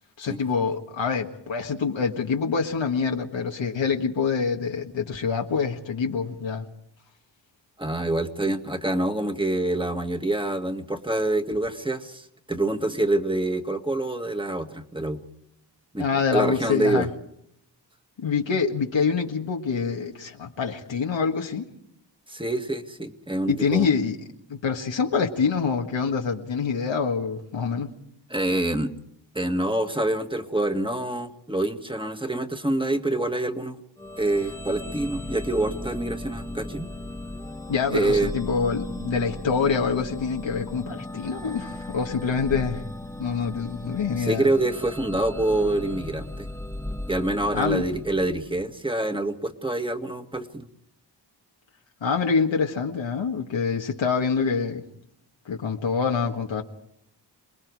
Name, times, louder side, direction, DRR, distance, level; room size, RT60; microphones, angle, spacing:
voice 1, 0.2-6.7 16.0-17.1 18.2-21.6 23.5-24.2 24.5-27.9 37.7-42.8 43.2-44.5 47.5-47.8 52.0-54.8 55.4-56.6, left 5 dB, 85° left, 1.7 m, -26 dB
voice 2, 7.8-15.2 15.9-17.1 22.3-23.9 28.3-28.9 29.3-33.8 34.2-36.9 37.9-38.3 44.2-46.5 47.1-50.7, right 1 dB, 10° right, 1.8 m, -26 dB
sound 1, 34.0-48.7, left 1 dB, 5° left, 1.4 m, -36 dB
27.5 x 20.0 x 4.8 m
wide cardioid pair, 70°, 44 cm